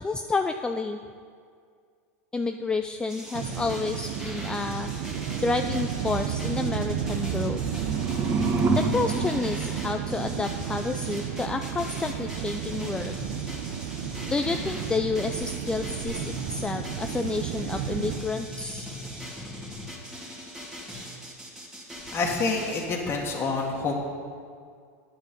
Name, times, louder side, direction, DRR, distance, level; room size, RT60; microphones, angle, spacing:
voice 1, 0.0-1.0 2.3-4.9 5.4-7.6 8.8-13.1 14.3-18.9, left 3 dB, 10° left, 6 dB, 0.4 m, -30 dB
sound 1, 3.1-22.9, equal, 5° right, 2.1 m, -40 dB
sound 2, 3.3-18.2, right 10 dB, 65° right, 0.7 m, -32 dB
sound 3, 7.5-10.5, right 2 dB, 25° right, 1.4 m, -29 dB
voice 2, 22.1-23.9, left 3 dB, 30° left, -1 dB, 1.7 m, -27 dB
9.3 x 8.8 x 5.4 m, 2.1 s
hypercardioid pair, 100°, 8 cm